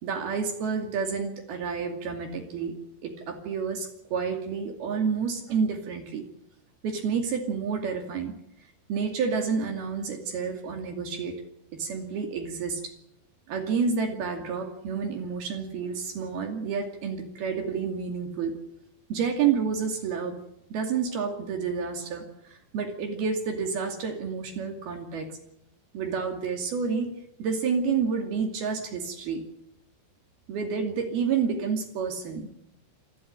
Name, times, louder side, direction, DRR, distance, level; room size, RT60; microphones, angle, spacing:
voice 1, 0.0-2.8 3.0-6.3 6.8-8.4 8.9-11.4 11.7-12.9 13.5-18.6 19.1-20.4 20.7-25.4 25.9-27.1 27.4-29.4 30.5-32.5, right 6 dB, 60° right, 4 dB, 4.2 m, -29 dB
28.0 x 12.5 x 9.0 m, 0.82 s
omnidirectional pair, 5.4 m